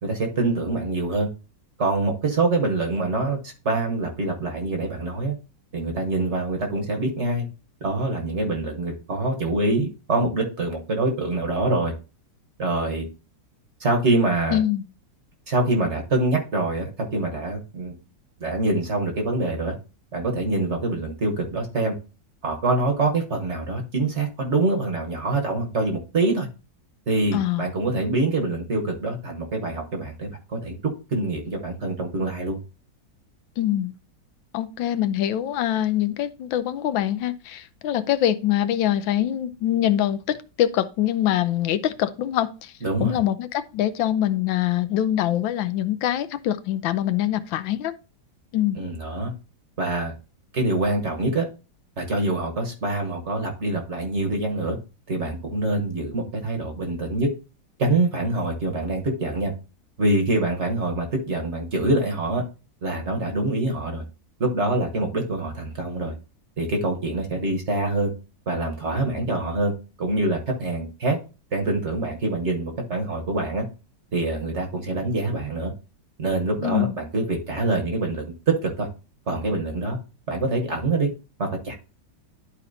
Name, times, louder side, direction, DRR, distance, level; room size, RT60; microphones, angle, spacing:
voice 1, 0.0-1.3 1.8-5.3 5.7-7.5 7.8-11.9 12.6-13.1 13.8-14.6 15.5-17.9 18.4-19.7 20.1-21.9 22.4-26.5 27.1-30.7 31.1-32.6 42.8-43.2 48.8-49.3 49.8-50.1 50.5-51.5 52.0-54.8 55.1-57.3 57.8-59.5 60.0-62.4 62.8-64.0 64.4-66.1 66.6-68.1 68.5-69.7 70.0-71.2 71.5-73.6 74.1-75.7 76.2-78.9 79.3-80.0 80.3-81.1 81.4-81.7, right 2 dB, 45° right, 1.2 m, -25 dB
voice 2, 14.5-14.9 27.3-27.7 33.6-33.9 34.5-42.7 43.0-47.9 48.5-48.8 76.6-76.9, left 12 dB, 85° left, 1.4 m, -24 dB
11.5 x 4.2 x 2.6 m
omnidirectional pair, 2.0 m